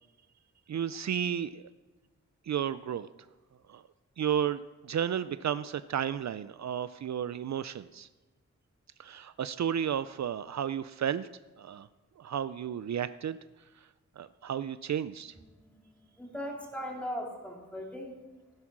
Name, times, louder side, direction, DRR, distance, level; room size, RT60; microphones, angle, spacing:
voice 1, 0.7-1.6 2.4-3.1 3.7-3.8 4.2-8.1 9.0-11.3 11.6-11.9 12.2-13.4 14.2-15.3, right 9 dB, 70° right, 14 dB, 0.4 m, -33 dB
voice 2, 16.2-18.2, equal, 5° left, 0 dB, 2.7 m, -38 dB
15.0 x 11.0 x 6.0 m, 1.2 s
wide cardioid pair, 130°, 29 cm